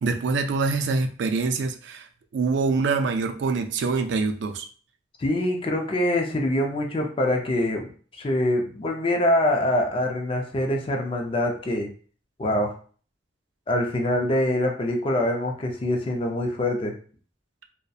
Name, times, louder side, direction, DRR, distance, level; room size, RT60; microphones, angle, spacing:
voice 1, 0.0-2.1 2.3-4.7, right 4 dB, 80° right, 6 dB, 0.4 m, -25 dB
voice 2, 5.2-11.9 12.4-12.7 13.7-16.9, left 1 dB, 30° left, 1 dB, 0.5 m, -24 dB
2.6 x 2.1 x 2.3 m, 0.42 s
head